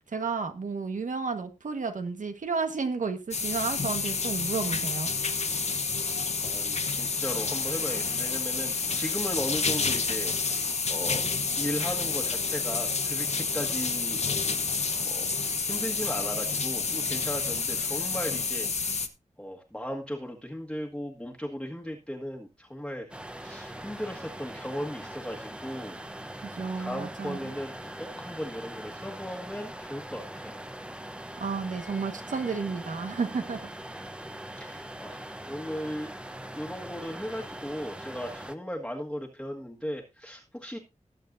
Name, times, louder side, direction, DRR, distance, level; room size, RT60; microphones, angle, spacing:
voice 1, 0.1-5.1 26.5-27.5 31.4-33.7, right 4 dB, 90° right, 1.5 m, -32 dB
sound 1, 3.3-19.1, left 4 dB, 60° left, 1.1 m, -29 dB
voice 2, 6.4-10.3 10.9-11.2 11.6-14.2 15.0-15.3 15.6-18.7 19.4-23.1 23.4-26.0 26.8-30.5 34.3-35.2 35.5-36.1 36.5-40.8, equal, 5° left, 1.6 m, -36 dB
sound 2, 23.1-38.6, right 1 dB, 10° right, 0.9 m, -41 dB
19.0 x 7.4 x 2.7 m
wide cardioid pair, 75°, 13 cm